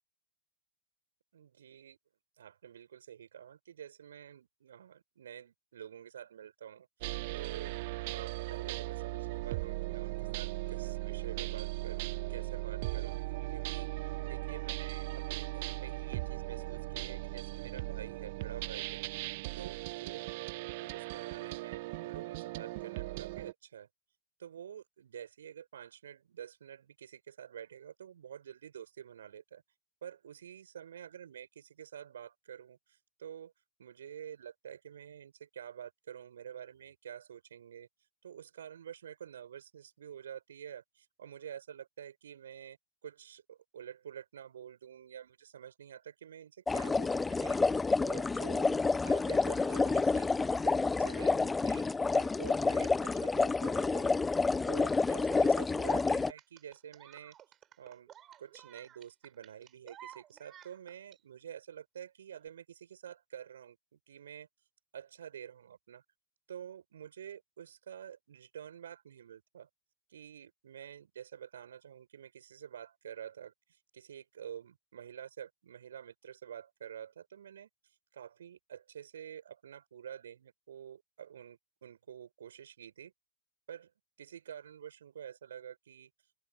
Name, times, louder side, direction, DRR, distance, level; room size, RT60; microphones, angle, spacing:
voice 1, 1.3-2.0 2.4-7.8 8.1-13.2 13.5-13.9 14.2-19.1 19.6-20.3 20.6-23.9 24.4-29.6 30.0-33.5 33.8-37.9 38.2-42.8 43.0-54.1 54.6-57.4 57.8-58.1 58.4-64.5 64.9-66.0 66.5-69.7 70.1-73.5 73.9-77.7 78.1-83.1 83.7-83.9 84.2-86.1, right 9 dB, 65° right, 6.9 m, -48 dB
sound 1, 7.0-23.5, right 22 dB, 50° right, 1.4 m, -38 dB
sound 2, 46.7-56.3, left 3 dB, 10° left, 1.1 m, -29 dB
sound 3, 56.4-61.2 62.4-62.5, right 11 dB, 30° right, 6.3 m, -54 dB
open air
figure-of-eight pair, 90°, 0 cm